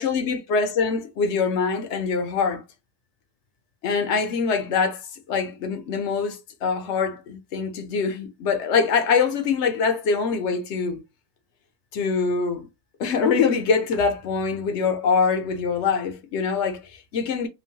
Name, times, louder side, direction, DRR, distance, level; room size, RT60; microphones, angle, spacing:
voice 1, 0.0-2.6 3.8-11.0 11.9-12.7 13.0-17.5, left 5 dB, 65° left, 0.7 m, -24 dB
3.0 x 2.2 x 2.7 m
omnidirectional pair, 1.7 m